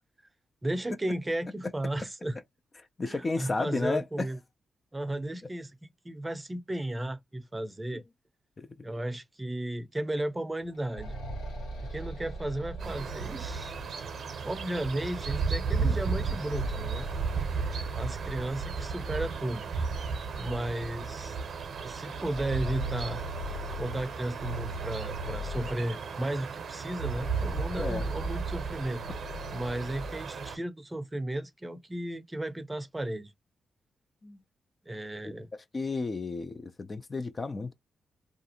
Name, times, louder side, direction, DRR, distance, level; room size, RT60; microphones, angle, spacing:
voice 1, 0.6-2.4 3.0-4.4 4.9-5.7 6.0-8.0 8.8-11.2 11.9-13.8 14.4-17.1 17.9-19.7 20.4-21.4 21.8-23.3 23.8-29.0 29.5-33.3 34.8-35.5, right 1 dB, 20° right, 0.5 m, -34 dB
voice 2, 3.0-4.3 7.9-8.0 8.6-8.7 27.8-28.0 34.2-34.4 35.7-37.7, left 3 dB, 40° left, 0.4 m, -32 dB
sound 1, 10.6-14.4 16.2-18.4 18.7-18.8 19.7-19.8 20.3-20.4 22.0-26.2 26.9-30.2, right 2 dB, 85° left, 1.2 m, -37 dB
sound 2, 12.8-30.6, right 5 dB, 65° right, 0.6 m, -35 dB
2.5 x 2.4 x 2.7 m
supercardioid pair, 45°, 0 cm